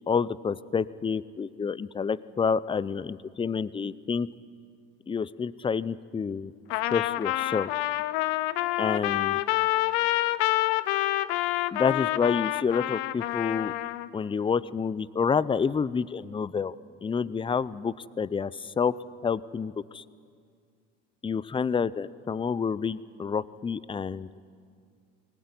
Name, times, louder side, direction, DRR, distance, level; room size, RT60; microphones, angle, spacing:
voice 1, 0.1-4.3 5.1-6.5 6.9-7.7 8.8-9.4 11.7-13.7 14.1-16.7 17.0-18.9 19.2-20.0 21.2-24.3, left 6 dB, 15° left, 18 dB, 0.6 m, -28 dB
Trumpet, 6.7-14.1, left 17 dB, 75° left, 0.8 m, -27 dB
19.5 x 19.5 x 9.6 m, 2.2 s
supercardioid pair, 85°, 33 cm